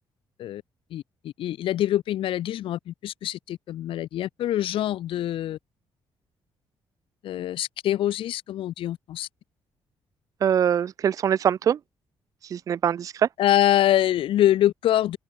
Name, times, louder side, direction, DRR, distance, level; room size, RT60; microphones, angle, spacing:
voice 1, 0.9-5.6 7.2-9.3 13.4-15.2, left 12 dB, 65° left, 0.8 m, -24 dB
voice 2, 10.4-11.8 12.5-13.3, right 9 dB, 35° right, 0.4 m, -23 dB
cardioid pair, 160°, 10 cm